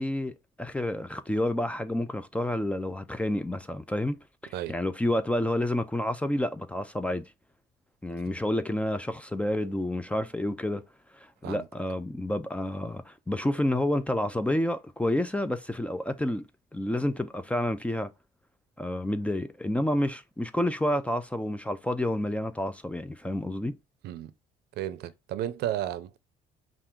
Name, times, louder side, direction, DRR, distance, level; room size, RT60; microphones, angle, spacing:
voice 1, 0.0-4.2 4.4-7.3 8.0-10.9 11.2-16.5 16.7-18.1 18.8-23.8, left 1 dB, 5° left, 0.5 m, -29 dB
voice 2, 24.8-26.2, right 12 dB, 75° right, 0.6 m, -33 dB
5.6 x 2.5 x 3.6 m
cardioid pair, 110°, 17 cm